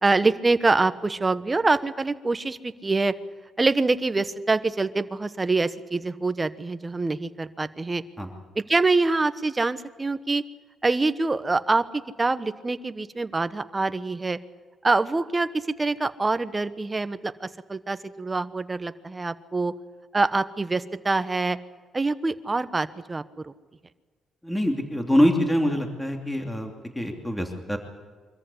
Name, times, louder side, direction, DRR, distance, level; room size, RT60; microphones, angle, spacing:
voice 1, 0.0-3.1 3.6-8.0 8.5-10.4 10.8-14.4 14.8-19.7 20.1-21.6 21.9-23.5, right 3 dB, 20° right, 12 dB, 1.1 m, -25 dB
voice 2, 24.4-27.8, equal, 10° left, 3 dB, 2.9 m, -24 dB
24.0 x 14.5 x 9.8 m, 1.5 s
cardioid pair, 90°, 0 cm